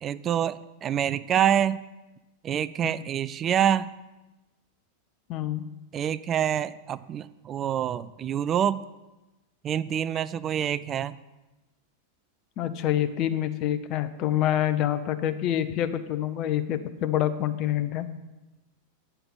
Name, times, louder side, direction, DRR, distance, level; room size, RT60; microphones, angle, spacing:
voice 1, 0.0-1.8 2.4-3.9 5.9-8.8 9.6-11.2, right 9 dB, 30° right, 15 dB, 0.3 m, -26 dB
voice 2, 5.3-5.6 12.6-18.1, left 11 dB, 40° left, 12 dB, 0.7 m, -27 dB
8.5 x 5.6 x 6.0 m, 1.1 s
figure-of-eight pair, 90°, 0 cm